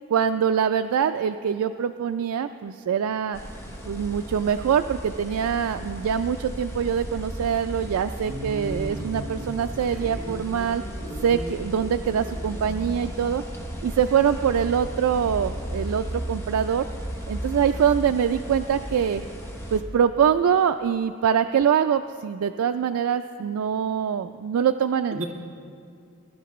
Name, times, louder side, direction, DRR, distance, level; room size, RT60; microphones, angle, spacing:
voice 1, 0.1-3.4 3.9-10.8 11.2-13.4 13.8-16.8 17.3-19.2 19.7-25.2, right 8 dB, 90° right, 8 dB, 0.3 m, -24 dB
sound 1, 3.3-19.8, equal, 10° left, 0.9 m, -35 dB
voice 2, 8.2-10.2 25.1-25.2, right 2 dB, 70° right, 0 dB, 2.2 m, -35 dB
21.5 x 11.5 x 3.1 m, 2.4 s
head